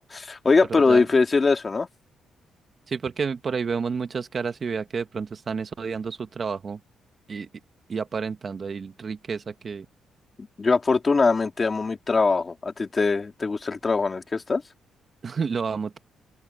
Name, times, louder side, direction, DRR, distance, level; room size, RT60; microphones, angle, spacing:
voice 1, 0.0-1.9 10.6-14.6, left 4 dB, 25° left, 2.2 m, -22 dB
voice 2, 2.9-6.8 7.3-7.5 7.9-9.9 15.2-16.0, right 5 dB, 35° right, 1.0 m, -30 dB
open air
cardioid pair, 160°, 0 cm